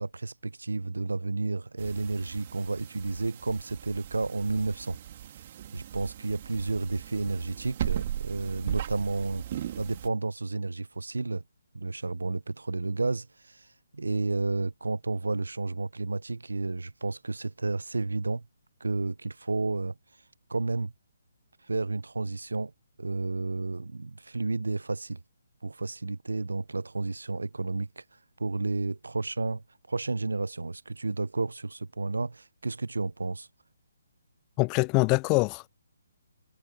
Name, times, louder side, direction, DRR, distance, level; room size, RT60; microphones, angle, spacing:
voice 1, 0.0-5.0 5.7-11.4 11.7-13.7 13.9-18.4 18.8-20.0 20.5-20.9 21.7-22.7 23.0-25.2 25.6-28.0 28.4-33.5, right 3 dB, 80° right, 0.6 m, -31 dB
sound 1, 1.8-10.1, right 11 dB, 40° right, 2.8 m, -38 dB
voice 2, 34.6-35.7, left 29 dB, 25° left, 0.3 m, -24 dB
figure-of-eight pair, 145°, 0 cm